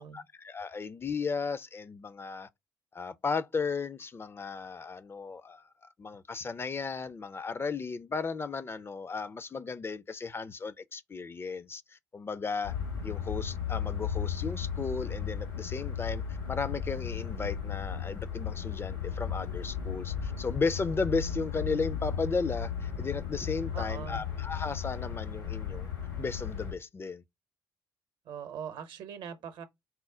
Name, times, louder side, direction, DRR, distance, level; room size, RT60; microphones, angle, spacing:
voice 1, 0.0-2.5 2.9-5.6 6.0-12.8 13.0-25.9 26.2-27.2, left 4 dB, 25° left, 0.4 m, -35 dB
sound 1, 12.6-26.7, left 8 dB, 85° left, 1.3 m, -35 dB
voice 2, 23.7-24.3 28.2-29.6, right 7 dB, 60° right, 0.7 m, -41 dB
4.2 x 2.1 x 3.6 m
hypercardioid pair, 50°, 9 cm